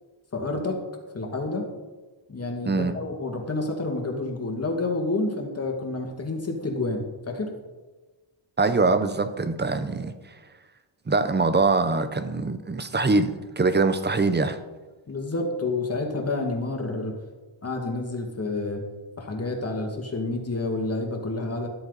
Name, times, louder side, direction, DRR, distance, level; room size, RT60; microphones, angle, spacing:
voice 1, 0.3-0.8 1.1-1.7 2.3-7.5 15.1-17.2 17.6-18.8 19.2-21.7, left 2 dB, 30° left, 2 dB, 2.2 m, -29 dB
voice 2, 8.6-10.1 11.1-14.6, right 3 dB, 20° right, 11 dB, 0.8 m, -23 dB
13.0 x 11.0 x 4.1 m, 1.2 s
wide cardioid pair, 120°, 49 cm